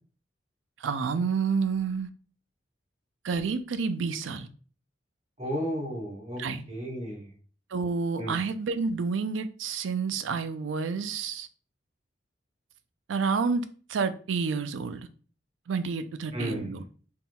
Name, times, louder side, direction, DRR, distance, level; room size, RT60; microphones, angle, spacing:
voice 1, 0.8-2.1 3.2-4.5 6.4-6.6 7.7-11.5 13.1-13.6 13.9-15.0 15.7-16.8, right 5 dB, 90° right, 0.4 m, -29 dB
voice 2, 5.4-6.4 6.7-7.3 8.2-8.4 16.3-16.8, equal, 35° right, 1.5 m, -33 dB
4.1 x 3.7 x 2.2 m
head